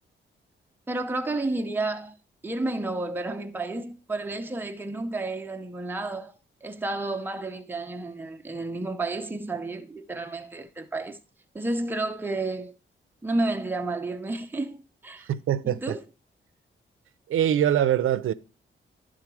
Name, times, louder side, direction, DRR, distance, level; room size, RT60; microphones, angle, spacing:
voice 1, 0.9-2.1 2.4-6.3 6.6-11.2 11.5-12.7 13.2-15.3 15.6-16.0, right 2 dB, 10° right, 0.6 m, -31 dB
voice 2, 15.3-16.0 17.3-18.3, right 10 dB, 90° right, 0.5 m, -23 dB
11.5 x 3.8 x 4.7 m
wide cardioid pair, 150°, 21 cm